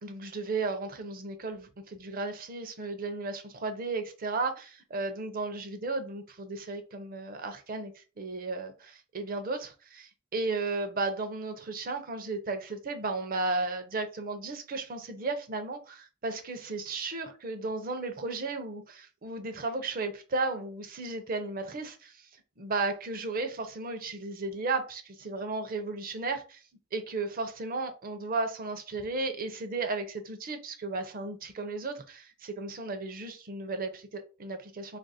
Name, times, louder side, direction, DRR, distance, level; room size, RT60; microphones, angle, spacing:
voice 1, 0.0-22.2 22.6-26.6 26.9-35.0, right 3 dB, 45° right, 0.6 m, -34 dB
2.8 x 2.5 x 4.1 m
head